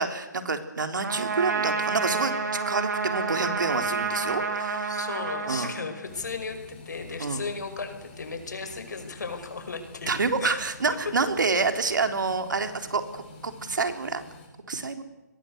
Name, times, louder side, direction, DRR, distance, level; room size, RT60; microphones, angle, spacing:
voice 1, 0.0-2.3 2.7-4.9 5.5-5.7 7.2-7.4 10.1-14.2 14.7-15.0, right 4 dB, 85° right, 7 dB, 3.7 m, -28 dB
Trumpet, 1.0-6.3, right 4 dB, 65° right, 4.8 m, -29 dB
voice 2, 4.8-10.1 10.4-10.6 11.0-11.1, left 4 dB, 70° left, 8 dB, 5.6 m, -35 dB
sound 1, 6.0-14.5, left 3 dB, 25° left, 7.8 m, -48 dB
27.0 x 22.0 x 8.0 m, 1.0 s
hypercardioid pair, 180°, 10 cm